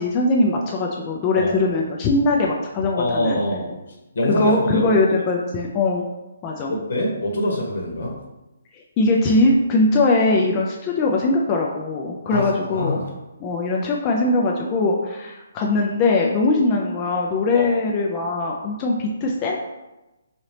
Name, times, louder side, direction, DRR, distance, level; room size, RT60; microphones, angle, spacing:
voice 1, 0.0-3.4 4.4-6.1 6.4-6.7 8.7-13.0 13.4-19.5, left 2 dB, 25° left, -1 dB, 0.3 m, -21 dB
voice 2, 1.3-1.8 3.0-3.7 4.1-4.9 6.7-8.1 12.2-13.0 17.5-17.7, left 1 dB, 70° left, -1 dB, 1.1 m, -24 dB
3.9 x 2.8 x 3.2 m, 1.0 s
hypercardioid pair, 155°, 0 cm